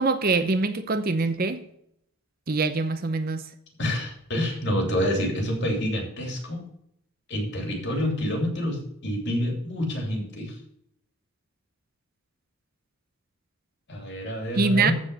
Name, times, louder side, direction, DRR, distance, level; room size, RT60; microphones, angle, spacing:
voice 1, 0.0-1.6 2.5-3.4 14.6-14.9, right 3 dB, 40° right, 0.7 m, -24 dB
voice 2, 3.8-6.7 7.3-10.5 13.9-14.9, left 1 dB, 50° left, 3.0 m, -27 dB
14.5 x 5.0 x 5.5 m
head